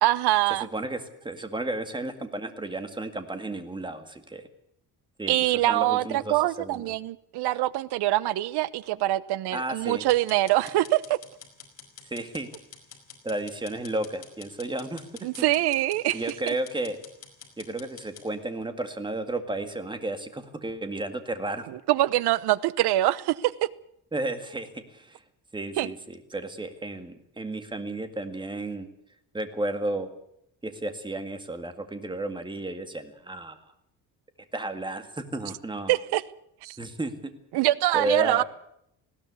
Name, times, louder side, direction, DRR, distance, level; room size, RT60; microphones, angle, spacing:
voice 1, 0.0-0.7 5.3-11.2 15.2-16.2 16.5-16.6 21.7-23.7 25.8-25.9 35.9-36.2 36.6-36.8 37.5-38.4, right 16 dB, 75° right, 1.0 m, -24 dB
voice 2, 0.6-4.4 5.2-5.4 5.7-6.8 9.5-10.1 12.1-12.5 13.2-15.5 16.1-17.0 17.6-21.6 24.1-25.2 25.5-28.9 29.3-30.1 30.6-33.6 34.5-35.9 36.8-37.3 37.9-38.4, right 2 dB, 10° right, 2.0 m, -33 dB
sound 1, 10.1-18.3, left 7 dB, 40° left, 4.6 m, -47 dB
19.5 x 16.5 x 8.2 m
cardioid pair, 145°, 39 cm